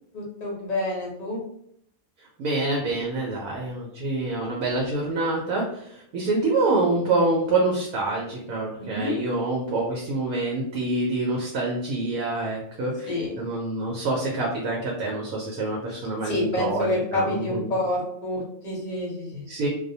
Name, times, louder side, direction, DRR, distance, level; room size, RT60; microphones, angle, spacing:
voice 1, 0.1-1.4 8.8-9.2 13.1-13.3 16.2-19.5, left 1 dB, 40° left, -2 dB, 0.6 m, -28 dB
voice 2, 2.4-17.7 19.3-19.7, right 2 dB, 75° right, -2 dB, 1.1 m, -26 dB
2.6 x 2.1 x 2.6 m, 0.70 s
omnidirectional pair, 1.6 m